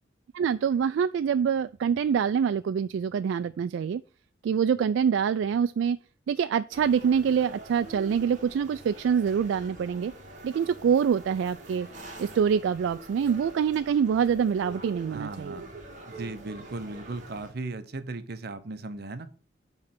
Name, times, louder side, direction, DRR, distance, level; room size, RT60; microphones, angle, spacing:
voice 1, 0.3-4.0 4.4-6.0 6.3-10.1 10.4-11.9 12.2-15.6, right 7 dB, 85° right, 0.3 m, -25 dB
sound 1, 6.7-17.5, right 2 dB, 40° right, 1.7 m, -45 dB
voice 2, 15.1-15.7 16.1-19.3, right 2 dB, 60° right, 0.8 m, -37 dB
8.8 x 3.2 x 5.9 m
head